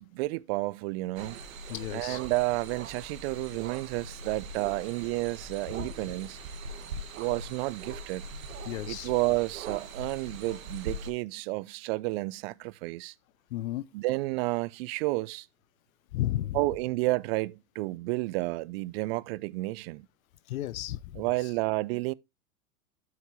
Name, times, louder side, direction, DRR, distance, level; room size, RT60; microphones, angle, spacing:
voice 1, 0.0-1.4 1.9-6.4 7.1-8.2 8.9-13.1 13.9-15.5 16.5-20.1 21.2-22.1, right 21 dB, 50° right, 0.4 m, -31 dB
sound 1, 1.2-11.1, right 3 dB, 80° right, 1.3 m, -41 dB
voice 2, 1.7-2.2 5.8-5.9 8.7-9.1 13.5-13.8 16.1-16.6 20.5-21.5, left 14 dB, 85° left, 0.5 m, -33 dB
12.0 x 4.5 x 2.9 m
hypercardioid pair, 110°, 40 cm